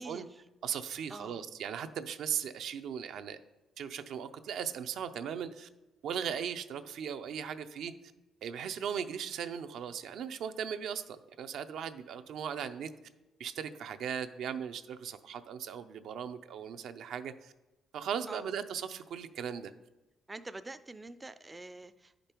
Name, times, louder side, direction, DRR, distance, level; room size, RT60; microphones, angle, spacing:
voice 1, 0.0-0.4 1.1-1.4 18.3-18.5 20.3-22.3, right 2 dB, 20° right, 12 dB, 0.4 m, -46 dB
voice 2, 0.6-3.4 3.8-5.7 6.0-7.9 8.4-12.9 13.4-17.5 17.9-19.7, right 8 dB, 75° right, 9 dB, 0.5 m, -38 dB
10.0 x 5.2 x 4.4 m, 1.0 s
cardioid pair, 90°, 0 cm